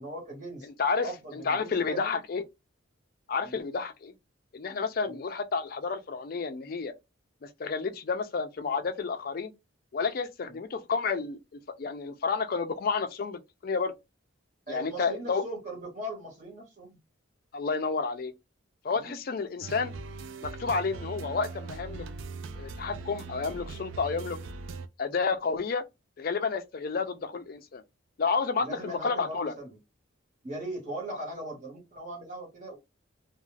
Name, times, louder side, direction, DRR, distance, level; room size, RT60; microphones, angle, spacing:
voice 1, 0.0-0.7 1.0-2.2 3.4-3.6 5.1-5.2 10.5-10.6 14.7-17.0 18.9-19.2 28.6-29.8 30.4-32.8, right 1 dB, 35° right, 1.3 m, -40 dB
voice 2, 0.8-2.4 3.3-4.1 4.5-6.9 7.4-9.5 9.9-13.9 14.7-15.4 17.5-18.3 18.8-19.9 20.4-22.1 22.6-24.4 25.0-25.8 26.2-27.8 28.2-29.5 31.1-31.2, left 4 dB, 45° left, 0.4 m, -30 dB
sound 1, 19.6-24.9, right 3 dB, 70° right, 0.3 m, -40 dB
2.3 x 2.3 x 3.1 m
head